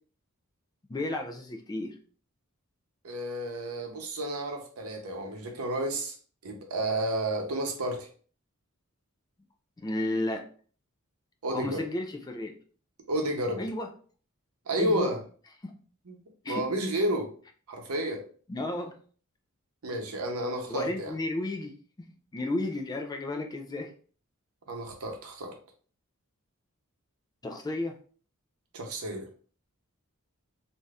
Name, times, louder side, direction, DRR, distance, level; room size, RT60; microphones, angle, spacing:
voice 1, 0.9-1.9 9.8-10.5 11.5-12.5 13.6-13.9 14.8-15.1 15.6-15.7 16.4-16.6 18.5-19.0 20.7-22.1 22.3-23.9 27.4-28.0, left 2 dB, 20° left, 4 dB, 0.3 m, -33 dB
voice 2, 3.0-6.2 6.4-8.1 11.4-11.8 13.1-13.6 14.7-15.2 16.1-16.2 16.5-17.3 17.7-18.2 19.8-21.1 24.7-25.5 28.7-29.3, right 1 dB, 90° right, 3 dB, 0.7 m, -31 dB
2.6 x 2.3 x 3.3 m, 0.42 s
head